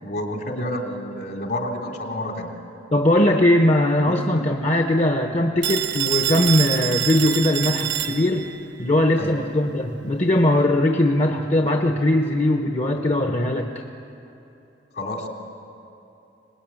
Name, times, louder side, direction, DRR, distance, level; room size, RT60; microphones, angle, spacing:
voice 1, 0.0-2.6 9.2-9.3 14.9-15.3, left 1 dB, 60° left, 2 dB, 3.5 m, -29 dB
voice 2, 2.9-8.5 8.8-13.8, left 1 dB, 35° left, 3 dB, 1.2 m, -20 dB
Telephone, 5.6-8.6, right 12 dB, 85° right, 1.3 m, -26 dB
25.0 x 20.0 x 9.1 m, 2.9 s
head